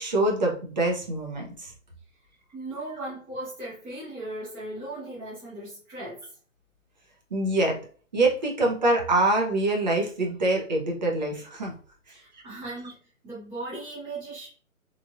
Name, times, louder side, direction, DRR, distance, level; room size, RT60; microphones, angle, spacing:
voice 1, 0.0-1.7 7.3-7.8 8.1-11.7, right 2 dB, 35° right, 0 dB, 0.6 m, -25 dB
voice 2, 2.5-6.2 12.1-12.9 13.2-14.5, right 2 dB, 10° right, -8 dB, 0.9 m, -37 dB
3.1 x 2.4 x 2.3 m, 0.42 s
figure-of-eight pair, 150°, 42 cm